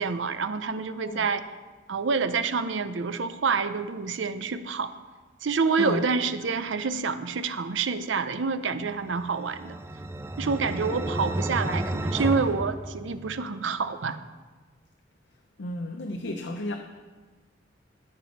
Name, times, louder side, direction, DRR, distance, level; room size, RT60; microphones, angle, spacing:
voice 1, 0.0-1.4 1.9-4.9 5.4-9.8 10.4-14.2, right 5 dB, 80° right, 11 dB, 0.6 m, -27 dB
sound 1, 9.0-13.6, right 1 dB, 15° right, 0.4 m, -32 dB
voice 2, 15.6-16.8, left 1 dB, 65° left, 4 dB, 0.7 m, -32 dB
12.0 x 6.9 x 5.3 m, 1.3 s
head